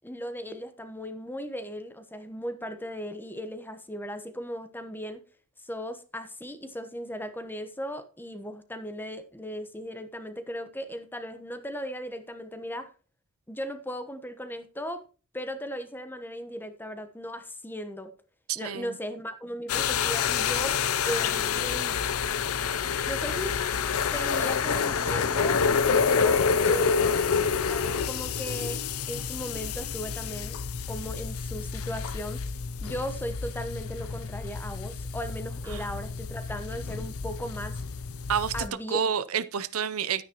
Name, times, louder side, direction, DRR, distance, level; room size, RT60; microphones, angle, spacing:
voice 1, 0.0-5.2 5.6-12.9 13.5-15.0 15.3-18.1 18.6-20.8 21.1-22.0 23.1-23.6 24.1-25.6 25.9-27.2 27.7-28.8 29.1-30.6 30.9-32.4 32.8-37.8 38.5-39.0, equal, 10° left, 1.1 m, -37 dB
voice 2, 18.5-18.9 35.7-35.9 38.3-40.2, right 7 dB, 75° right, 0.7 m, -29 dB
sound 1, 19.7-38.7, left 6 dB, 75° left, 0.6 m, -28 dB
12.0 x 9.8 x 3.0 m
head